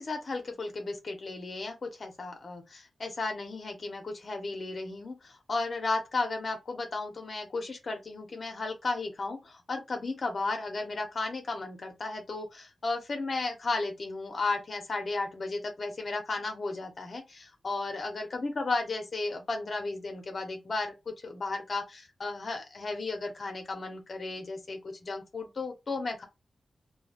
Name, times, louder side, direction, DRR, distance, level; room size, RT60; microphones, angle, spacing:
voice 1, 0.0-26.2, left 3 dB, 40° left, 0.7 m, -34 dB
2.2 x 2.2 x 3.3 m
wide cardioid pair, 170°, 0 cm